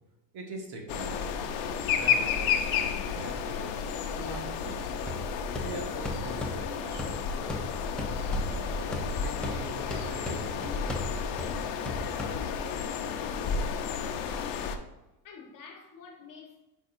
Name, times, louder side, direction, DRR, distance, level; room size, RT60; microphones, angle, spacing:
voice 1, 0.3-4.9 5.6-7.5 8.0-11.1, right 2 dB, 50° right, 1.7 m, -43 dB
sound 1, 0.9-14.8, left 6 dB, 60° left, 0.9 m, -31 dB
sound 2, 5.1-12.8, left 1 dB, ahead, 0.8 m, -39 dB
voice 2, 13.6-14.9 15.2-16.7, left 5 dB, 40° left, 1.4 m, -50 dB
8.5 x 5.5 x 2.7 m
cardioid pair, 140°, 50 cm